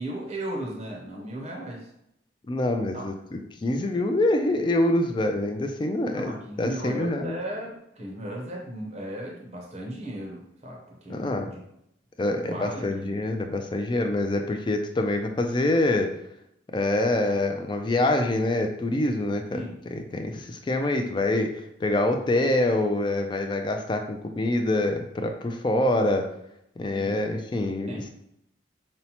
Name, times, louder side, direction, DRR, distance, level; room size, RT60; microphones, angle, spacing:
voice 1, 0.0-1.9 2.9-3.0 6.1-11.6 12.4-13.2 19.5-19.8 26.9-27.2 27.9-28.1, right 1 dB, 35° right, -1 dB, 0.6 m, -36 dB
voice 2, 2.5-7.4 11.1-11.5 12.2-16.1 16.7-19.6 19.9-26.3 26.8-28.1, left 1 dB, 25° left, 5 dB, 0.3 m, -25 dB
5.4 x 2.1 x 2.8 m, 0.78 s
head